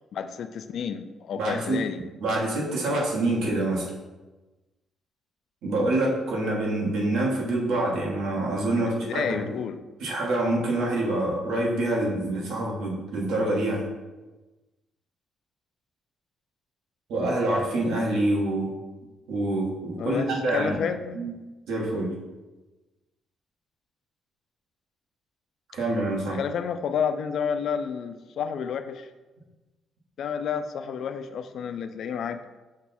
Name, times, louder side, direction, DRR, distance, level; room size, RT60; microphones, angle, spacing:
voice 1, 0.1-2.0 8.8-9.8 20.0-21.2 26.3-29.1 30.2-32.4, left 7 dB, 65° left, 9 dB, 0.3 m, -30 dB
voice 2, 1.3-1.8 2.2-3.9 5.6-9.5 10.0-13.8 17.1-18.7 19.3-20.8 21.1-21.3 21.7-22.1 25.7-26.4, right 2 dB, 85° right, -3 dB, 1.3 m, -26 dB
5.9 x 2.2 x 4.1 m, 1.2 s
cardioid pair, 90°, 0 cm